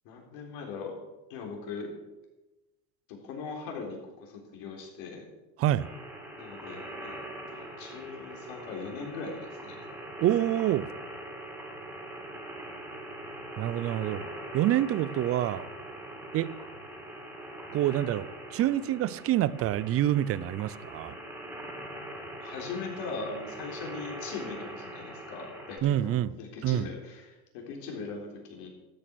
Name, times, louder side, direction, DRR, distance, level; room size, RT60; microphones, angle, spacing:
voice 1, 0.0-0.9 1.3-1.9 3.1-5.2 6.4-7.2 7.5-9.8 22.4-28.7, left 4 dB, 70° left, 1 dB, 3.9 m, -40 dB
sound 1, 5.8-25.8, right 1 dB, 5° right, 2.7 m, -42 dB
voice 2, 10.2-10.9 13.6-14.3 14.5-15.7 16.3-16.5 17.7-21.1 25.8-26.4 26.6-26.9, right 13 dB, 35° right, 18 dB, 0.5 m, -27 dB
13.0 x 8.7 x 6.2 m, 1.1 s
supercardioid pair, 120°, 45 cm